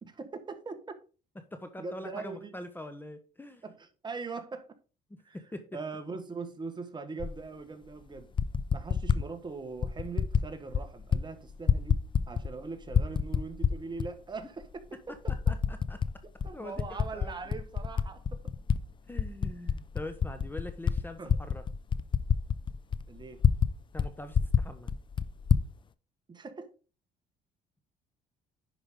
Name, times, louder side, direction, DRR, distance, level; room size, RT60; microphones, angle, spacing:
voice 1, 0.0-0.8 1.8-2.5 3.6-4.7 5.2-5.4 5.7-8.3 8.7-15.3 16.4-18.4 21.2-21.3 23.1-23.5 26.3-26.7, right 4 dB, 25° right, 1.4 m, -41 dB
voice 2, 1.5-3.6 5.1-5.7 14.9-15.2 15.5-16.0 16.5-17.4 19.1-21.6 23.9-24.9, left 1 dB, 10° left, 1.0 m, -43 dB
Typing, 7.2-7.3 8.2-9.2 9.8-10.5 10.7-11.2 11.5-12.6 12.9-14.1 14.6-14.7 15.3-16.1 16.4-18.8 19.1-23.7 24.0-24.1 24.3-25.7, left 7 dB, 30° left, 0.5 m, -27 dB
10.5 x 5.0 x 3.7 m
cardioid pair, 110°, 17 cm